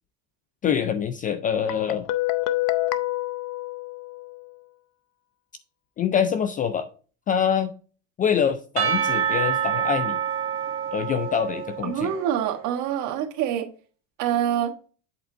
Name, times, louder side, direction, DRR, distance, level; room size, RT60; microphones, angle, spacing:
voice 1, 0.6-2.1 6.0-6.9 7.3-7.7 8.2-10.2 10.9-12.1, left 8 dB, 25° left, 11 dB, 0.3 m, -25 dB
Guitar, 1.7-4.5, left 17 dB, 60° left, 0.6 m, -27 dB
Percussion / Church bell, 8.8-12.4, right 8 dB, 35° right, 1.5 m, -27 dB
voice 2, 11.8-13.7 14.2-14.7, right 10 dB, 55° right, 3 dB, 1.4 m, -25 dB
8.0 x 4.3 x 3.8 m, 0.39 s
supercardioid pair, 140°, 36 cm